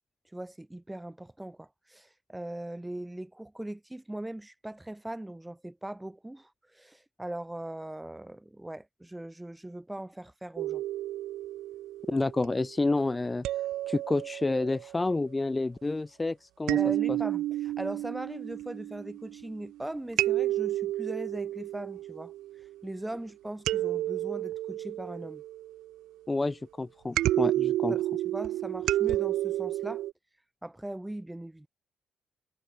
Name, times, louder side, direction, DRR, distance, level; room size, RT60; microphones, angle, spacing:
voice 1, 0.3-10.8 16.7-22.3 22.8-25.4 27.9-28.0 28.3-30.0 30.6-31.7, right 1 dB, 10° right, 3.5 m, -40 dB
sound 1, 10.6-12.6 13.4-15.0 16.7-19.6 20.2-22.8 23.7-25.9 27.2-30.1, right 14 dB, 85° right, 0.8 m, -31 dB
voice 2, 12.1-13.4 13.9-16.8 17.1-17.2 26.3-28.0, left 2 dB, 20° left, 2.3 m, -29 dB
cardioid pair, 90°, 0 cm